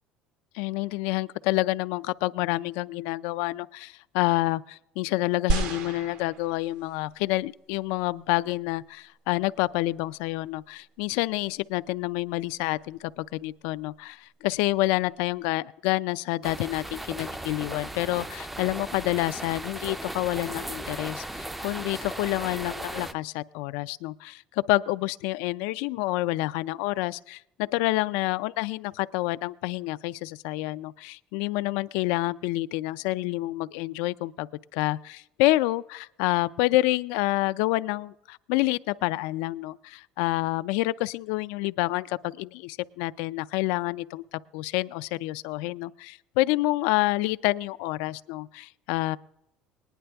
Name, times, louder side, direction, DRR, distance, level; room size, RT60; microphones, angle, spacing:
voice 1, 0.5-34.5 34.7-49.2, left 19 dB, 90° left, 15 dB, 0.3 m, -28 dB
sound 1, 5.5-7.0 7.8-7.9, right 4 dB, 70° right, 1.2 m, -30 dB
sound 2, 16.4-23.1, right 1 dB, 5° right, 0.4 m, -37 dB
19.0 x 10.0 x 3.4 m, 0.80 s
cardioid pair, 150°, 2 cm